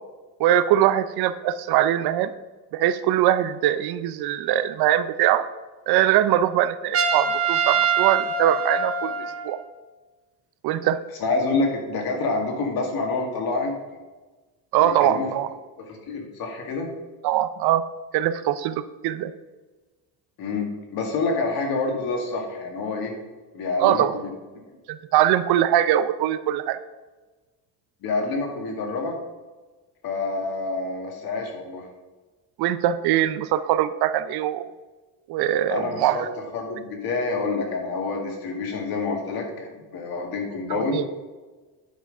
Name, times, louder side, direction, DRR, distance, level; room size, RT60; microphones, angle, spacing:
voice 1, 0.4-2.3 2.7-5.5 5.9-9.6 10.6-11.0 14.7-15.5 17.2-17.8 18.1-19.3 23.8-24.2 24.9-26.8 32.6-34.6 35.3-36.3 40.7-41.0, right 12 dB, 65° right, 13 dB, 0.6 m, -22 dB
Trumpet, 6.9-9.6, right 6 dB, 35° right, 0.8 m, -24 dB
voice 2, 11.2-14.0 14.8-15.3 15.8-16.9 20.4-23.1 23.5-24.3 28.0-29.2 30.0-31.9 35.7-36.2 36.5-41.0, left 3 dB, 60° left, 2 dB, 2.3 m, -27 dB
9.9 x 5.9 x 5.4 m, 1.2 s
cardioid pair, 155°, 41 cm